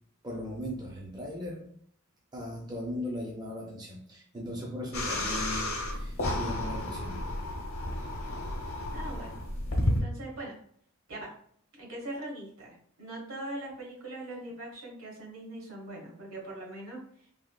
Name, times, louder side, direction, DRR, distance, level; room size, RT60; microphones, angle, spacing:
voice 1, 0.2-1.7 2.3-7.2, left 1 dB, 20° right, -2 dB, 0.4 m, -38 dB
sound 1, 4.9-10.0, left 1 dB, 75° left, 0.8 m, -32 dB
voice 2, 8.9-9.4 9.8-10.5 11.1-11.3 11.8-17.3, right 1 dB, 80° right, -3 dB, 1.2 m, -41 dB
3.3 x 2.2 x 2.3 m, 0.64 s
head